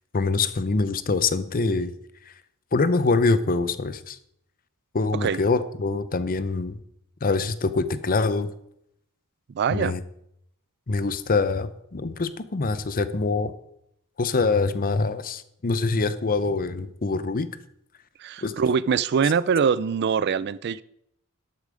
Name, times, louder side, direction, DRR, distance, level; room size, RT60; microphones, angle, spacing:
voice 1, 0.1-1.9 2.3-2.4 2.7-4.2 4.9-6.8 7.2-8.5 9.7-10.0 10.9-13.5 14.2-17.5 18.4-18.6, left 3 dB, 40° left, 0.7 m, -24 dB
voice 2, 9.5-9.9 18.2-20.8, right 6 dB, 50° right, 0.4 m, -23 dB
12.0 x 8.4 x 5.1 m
head